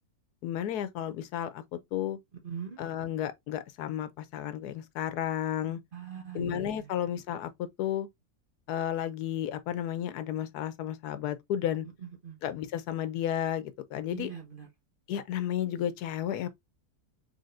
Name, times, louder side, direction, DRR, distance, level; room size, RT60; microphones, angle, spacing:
voice 1, 0.4-1.6 1.9-2.2 2.8-5.8 6.3-8.1 8.7-11.9 12.4-14.3 15.1-16.5, left 10 dB, 90° left, 1.2 m, -32 dB
voice 2, 2.4-2.8 5.9-7.0 12.0-12.3 14.1-14.7, right 8 dB, 40° right, 1.1 m, -41 dB
4.1 x 3.4 x 2.5 m
omnidirectional pair, 1.6 m